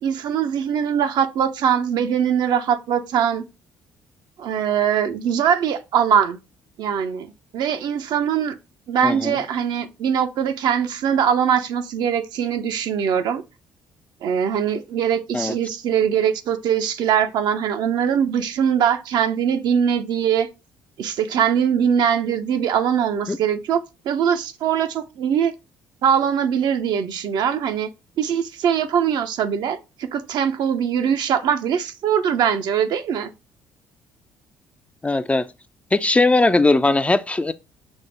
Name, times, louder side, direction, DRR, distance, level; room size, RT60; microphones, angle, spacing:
voice 1, 0.0-3.4 4.4-6.4 6.8-8.5 8.9-13.4 14.2-20.5 21.0-25.5 26.0-27.9 28.2-33.3, right 8 dB, 60° right, 0.5 m, -22 dB
voice 2, 9.0-9.4 15.3-15.5 23.3-23.4 35.0-35.4 35.9-37.5, left 2 dB, 15° left, 0.3 m, -19 dB
6.1 x 2.0 x 3.2 m
hypercardioid pair, 55°, 8 cm